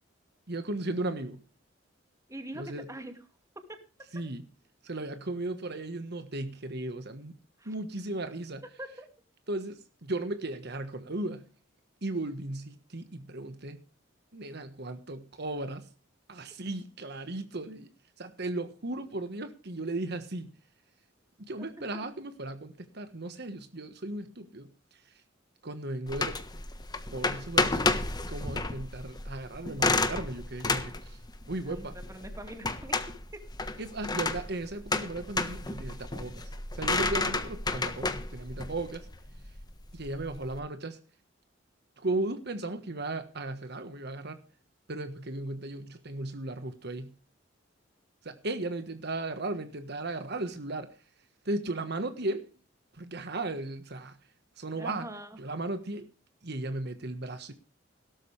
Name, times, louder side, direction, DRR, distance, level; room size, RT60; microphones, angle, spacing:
voice 1, 0.5-1.4 2.5-2.9 4.1-4.4 4.8-7.4 7.6-8.6 9.5-11.5 12.0-13.8 14.3-15.9 16.3-17.9 18.2-20.5 21.4-25.1 25.6-26.4 27.1-27.9 28.3-31.2 31.5-32.0 33.8-39.1 39.9-41.0 42.0-44.4 44.9-47.1 48.2-50.9 51.4-52.5 52.9-54.2 54.6-55.1 55.4-56.1 56.4-57.5, right 2 dB, 60° right, 1.4 m, -36 dB
voice 2, 2.3-3.1 7.6-7.7 8.8-9.1 21.6-21.7 21.9-22.0 31.7-33.0 54.8-55.4, right 1 dB, 15° right, 2.4 m, -43 dB
sound 1, 26.1-40.6, left 3 dB, 20° left, 1.4 m, -31 dB
17.5 x 13.0 x 3.4 m
head